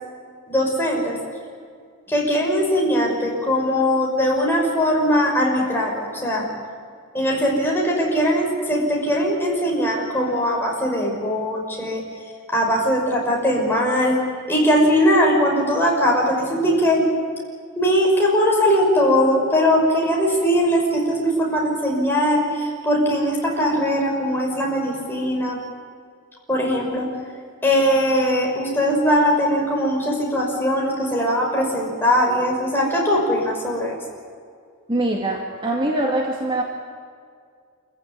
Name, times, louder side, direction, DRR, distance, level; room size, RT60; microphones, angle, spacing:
voice 1, 0.5-1.2 2.1-6.5 7.1-12.0 12.5-14.2 14.5-17.1 17.8-25.6 26.5-27.1 27.6-34.0, equal, 10° left, -2 dB, 5.7 m, -20 dB
voice 2, 34.9-36.6, right 1 dB, 25° right, 0 dB, 2.1 m, -23 dB
27.5 x 15.5 x 9.6 m, 2.2 s
head